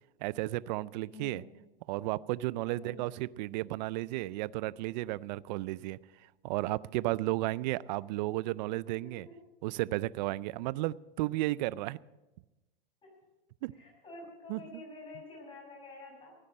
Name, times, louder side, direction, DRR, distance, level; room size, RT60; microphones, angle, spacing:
voice 1, 0.2-1.4 1.9-6.0 6.4-9.3 9.6-12.0 13.6-13.7 14.5-14.6, right 18 dB, 45° right, 21 dB, 0.4 m, -33 dB
voice 2, 1.1-1.4 2.6-3.0 9.0-9.4 13.0-13.2 13.7-16.4, left 2 dB, 15° left, -2 dB, 6.6 m, -48 dB
14.0 x 9.8 x 7.6 m, 1.1 s
supercardioid pair, 135°, 30 cm